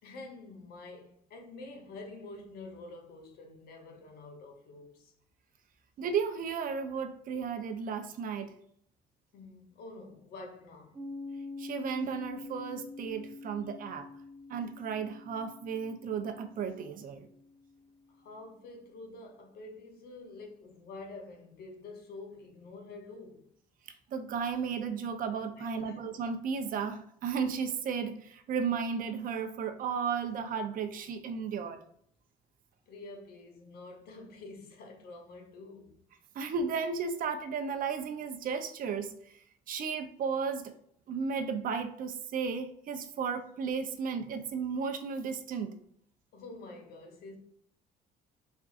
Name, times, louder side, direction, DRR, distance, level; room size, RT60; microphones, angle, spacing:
voice 1, 0.0-5.1 9.3-11.0 18.1-23.5 25.6-26.0 32.9-36.0 46.3-47.4, left 2 dB, 65° left, 1.0 m, -48 dB
voice 2, 6.0-8.5 11.6-14.1 14.5-17.3 24.1-31.8 36.3-39.1 39.7-40.7 41.1-45.7, right 6 dB, 55° right, 0.6 m, -34 dB
Piano, 10.9-18.2, left 3 dB, 25° right, 0.9 m, -46 dB
4.4 x 3.6 x 2.5 m
cardioid pair, 110°, 17 cm